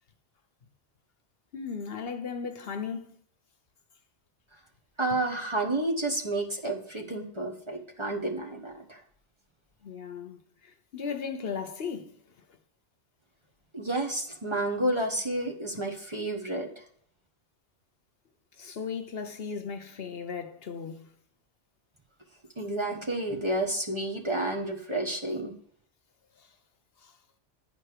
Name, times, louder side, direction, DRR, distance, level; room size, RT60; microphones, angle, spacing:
voice 1, 1.5-3.1 9.8-12.1 18.6-21.1 27.0-27.1, left 6 dB, 65° left, 1.0 m, -36 dB
voice 2, 5.0-9.0 13.7-16.7 22.6-25.5, right 1 dB, 25° right, 1.2 m, -30 dB
9.9 x 4.4 x 6.6 m
omnidirectional pair, 1.1 m